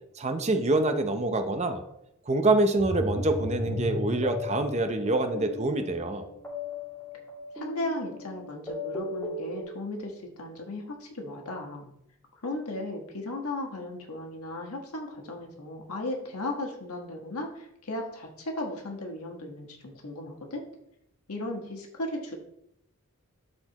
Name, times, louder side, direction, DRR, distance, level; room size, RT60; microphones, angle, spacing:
voice 1, 0.2-1.8 2.3-6.3, right 2 dB, 30° right, 7 dB, 0.6 m, -26 dB
sound 1, 2.8-9.6, left 2 dB, 10° left, 2.4 m, -36 dB
voice 2, 7.5-11.9 12.4-20.6 21.3-22.4, left 1 dB, 85° left, 2 dB, 1.4 m, -36 dB
12.0 x 4.2 x 3.0 m, 0.79 s
head